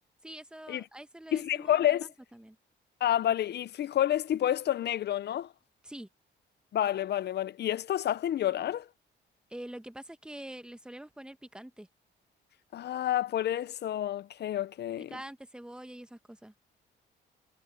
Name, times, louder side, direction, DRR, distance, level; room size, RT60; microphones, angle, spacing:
voice 1, 0.2-2.6 5.8-6.1 9.5-11.9 15.0-16.5, right 1 dB, 5° right, 1.4 m, -45 dB
voice 2, 1.3-2.1 3.0-5.5 6.7-8.9 12.7-15.1, left 11 dB, 55° left, 0.6 m, -29 dB
cardioid pair, 90°, 20 cm